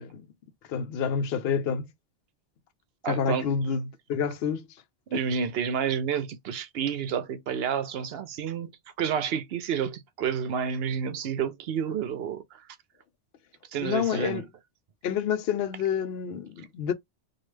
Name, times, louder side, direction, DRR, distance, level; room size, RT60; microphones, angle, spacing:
voice 1, 0.7-1.9 3.1-4.7 13.8-14.4 15.0-16.9, left 7 dB, 75° left, 0.8 m, -28 dB
voice 2, 3.0-3.5 5.1-8.7 9.0-12.6 13.7-14.5, right 7 dB, 70° right, 0.8 m, -30 dB
3.1 x 2.3 x 3.2 m
omnidirectional pair, 1.1 m